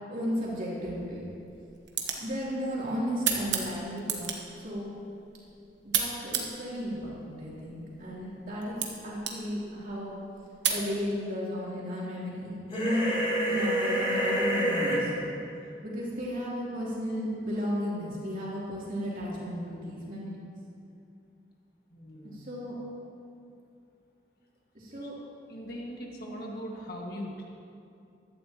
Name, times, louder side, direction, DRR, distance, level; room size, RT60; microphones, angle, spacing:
voice 1, 0.1-1.2 2.2-4.9 5.8-8.8 9.0-10.2 10.7-15.4 15.8-20.3 22.2-22.7 24.7-25.1, equal, 50° right, -7 dB, 3.2 m, -34 dB
sound 1, 0.8-10.9, right 7 dB, 85° right, 1.3 m, -36 dB
sound 2, 12.7-15.0, equal, 30° left, 2.8 m, -27 dB
voice 2, 21.9-22.5 24.9-25.1 25.5-27.5, equal, 55° left, -1 dB, 1.7 m, -40 dB
15.0 x 12.5 x 3.0 m, 2.6 s
head